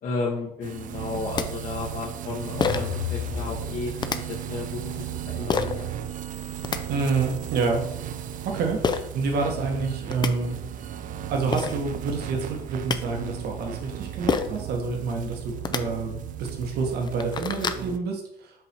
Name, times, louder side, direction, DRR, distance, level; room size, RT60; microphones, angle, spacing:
voice 1, 0.0-5.9, left 3 dB, 55° left, -7 dB, 1.4 m, -33 dB
sound 1, 0.6-18.0, right 10 dB, 50° right, 0.5 m, -35 dB
sound 2, 1.0-1.1 1.4-1.5 2.6-3.0 4.0-4.2 5.5-5.7 6.4-6.8 8.8-9.0 9.8-9.9 10.1-10.3 11.2-11.3 11.5-11.7 12.6-13.0 14.3-14.6 15.5-15.8 16.4-16.5 16.9-17.8, left 5 dB, 25° left, 0.4 m, -26 dB
sound 3, 2.4-4.3, left 10 dB, 80° left, 0.6 m, -34 dB
voice 2, 6.9-7.8 8.4-8.8 9.1-10.6 11.3-18.6, right 4 dB, 70° right, 2 dB, 1.4 m, -28 dB
7.9 x 2.8 x 4.4 m, 0.74 s
cardioid pair, 110°, 17 cm